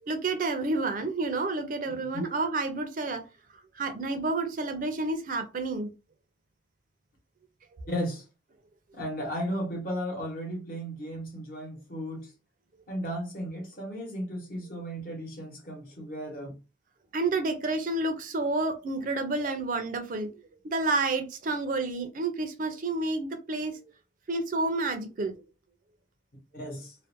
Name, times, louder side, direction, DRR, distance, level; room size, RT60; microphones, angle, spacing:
voice 1, 0.0-3.2 3.7-5.9 7.7-7.9 12.0-12.2 17.1-23.8 24.3-25.4, right 3 dB, 45° right, 0.4 m, -30 dB
voice 2, 1.9-2.2 7.9-8.2 8.9-12.3 12.9-16.6 26.5-26.9, equal, 50° left, 1.0 m, -35 dB
2.4 x 2.1 x 2.5 m
head